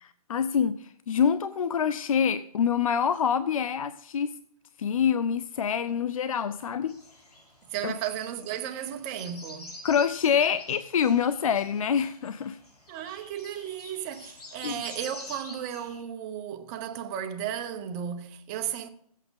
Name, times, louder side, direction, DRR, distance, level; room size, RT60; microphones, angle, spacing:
voice 1, 0.0-4.3 4.8-6.9 7.8-8.0 9.8-12.6 14.6-14.8, left 7 dB, 60° left, 0.6 m, -26 dB
sound 1, 6.9-16.0, left 2 dB, 75° left, 4.0 m, -47 dB
voice 2, 7.7-9.8 12.9-18.9, right 9 dB, 15° right, 0.7 m, -34 dB
14.0 x 8.3 x 5.3 m
hypercardioid pair, 160°, 20 cm